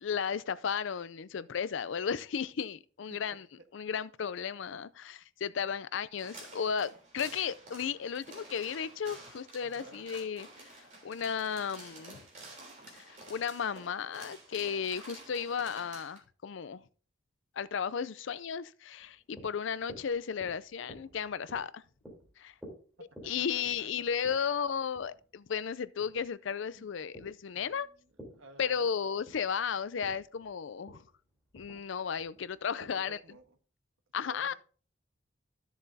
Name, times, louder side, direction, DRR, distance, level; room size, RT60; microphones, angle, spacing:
voice 1, 0.0-3.5 3.7-10.7 11.0-12.2 12.9-16.8 17.6-21.8 22.4-22.5 23.2-27.9 28.6-31.0 31.5-33.2 34.1-34.5, left 7 dB, 70° left, 0.4 m, -34 dB
sound 1, 6.2-16.2, right 2 dB, 35° right, 3.3 m, -51 dB
voice 2, 9.6-10.0 23.2-23.9 24.3-24.4 26.7-26.9 27.5-28.1 28.4-28.9 32.8-33.6 34.2-34.5, right 2 dB, 85° right, 1.3 m, -53 dB
sound 2, 19.0-33.5, equal, 5° right, 3.4 m, -54 dB
13.0 x 7.1 x 2.7 m
head